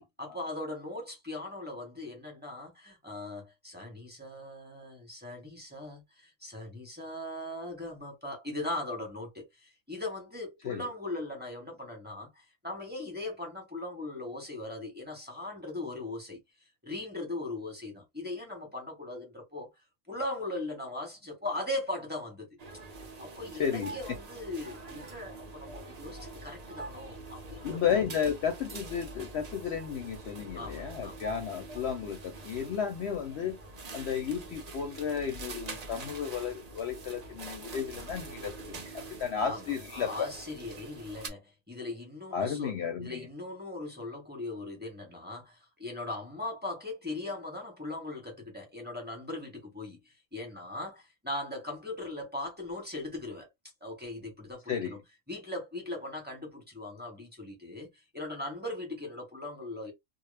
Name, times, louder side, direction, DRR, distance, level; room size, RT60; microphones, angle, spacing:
voice 1, 0.0-16.4 16.8-19.7 20.1-22.5 23.2-28.0 30.6-31.2 39.4-53.5 53.8-55.0 55.3-57.9 58.1-59.9, left 2 dB, 10° right, 0.9 m, -39 dB
sound 1, 22.6-41.3, right 3 dB, 50° right, 0.4 m, -45 dB
voice 2, 23.6-24.0 27.6-33.6 33.9-40.3 42.3-43.3 54.7-54.9, left 7 dB, 65° left, 0.7 m, -33 dB
2.2 x 2.0 x 3.2 m
omnidirectional pair, 1.3 m